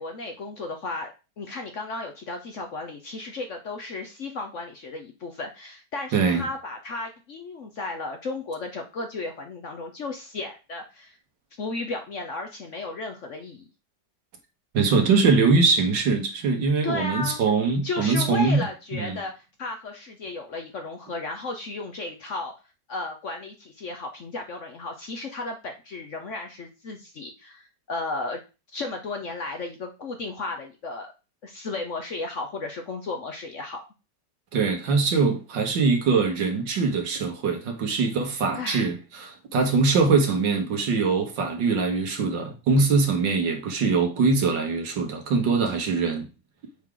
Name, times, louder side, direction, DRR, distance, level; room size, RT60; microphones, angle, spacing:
voice 1, 0.0-11.2 11.6-13.7 16.8-17.4 17.8-22.5 22.9-28.4 28.7-31.1 31.4-33.8 38.5-38.9, left 3 dB, 55° left, 1.0 m, -34 dB
voice 2, 6.1-6.5 14.7-18.6 18.9-19.2 34.5-46.3, right 4 dB, 75° right, 1.9 m, -22 dB
7.3 x 4.7 x 3.8 m
omnidirectional pair, 2.0 m